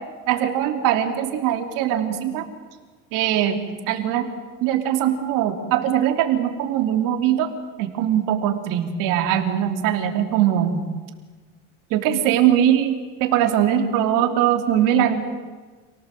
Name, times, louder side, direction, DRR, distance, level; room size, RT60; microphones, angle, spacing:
voice 1, 0.3-2.4 3.1-4.2 4.6-7.5 7.8-10.9 11.9-12.9 13.2-15.2, right 10 dB, 75° right, 5 dB, 3.1 m, -21 dB
28.5 x 18.5 x 7.7 m, 1.4 s
cardioid pair, 135°, 33 cm